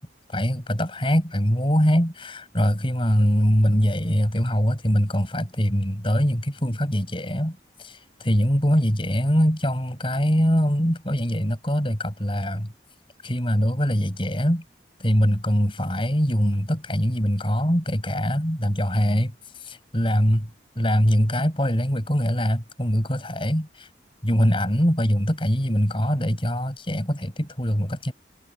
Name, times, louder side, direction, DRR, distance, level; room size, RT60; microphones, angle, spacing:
voice 1, 0.3-12.7 13.2-14.6 15.0-20.5 20.8-23.9 24.2-28.1, equal, 30° left, 7.5 m, -23 dB
head